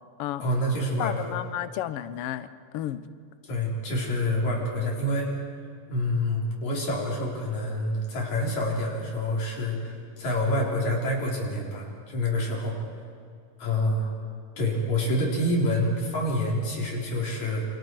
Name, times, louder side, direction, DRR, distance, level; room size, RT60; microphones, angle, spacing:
voice 1, 0.4-1.4 3.4-5.4 5.9-12.8 13.6-14.1 14.6-17.7, left 1 dB, 65° left, -2 dB, 5.2 m, -27 dB
voice 2, 1.0-2.5 2.7-3.0, left 12 dB, 85° left, 13 dB, 1.3 m, -32 dB
28.5 x 26.5 x 4.7 m, 2.2 s
omnidirectional pair, 3.6 m